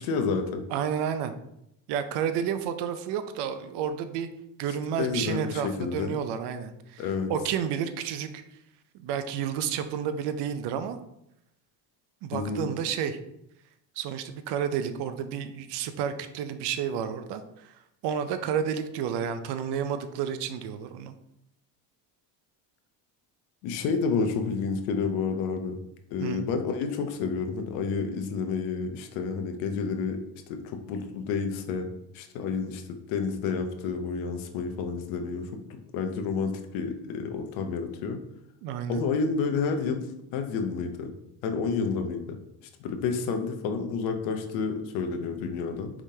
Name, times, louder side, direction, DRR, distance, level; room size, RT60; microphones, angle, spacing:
voice 1, 0.0-0.6 5.0-6.2 7.0-7.3 12.3-12.7 23.6-25.8 26.1-30.2 30.5-31.9 32.1-35.5 35.9-38.2 38.9-40.1 40.3-41.1 41.4-42.4 42.8-45.9, left 5 dB, 85° left, 6 dB, 0.8 m, -30 dB
voice 2, 0.7-1.3 1.9-4.3 4.6-8.3 9.0-11.0 12.2-13.2 14.0-17.8 18.0-21.1 26.2-26.4 38.6-39.0, right 8 dB, 65° right, 10 dB, 0.6 m, -31 dB
4.9 x 3.6 x 2.8 m, 0.80 s
cardioid pair, 110°, 45 cm